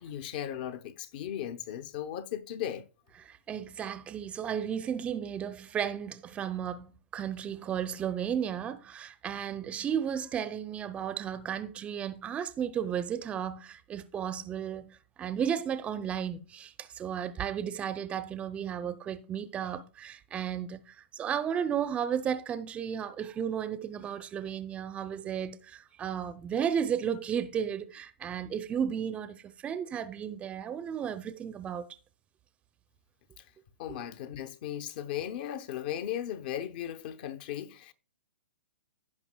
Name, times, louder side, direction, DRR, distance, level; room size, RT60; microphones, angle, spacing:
voice 1, 0.0-2.8 33.8-37.9, left 10 dB, 45° left, 0.8 m, -37 dB
voice 2, 3.2-31.9 33.9-34.0, right 8 dB, 20° right, 0.5 m, -34 dB
16.0 x 5.4 x 2.2 m
hypercardioid pair, 125°, 7 cm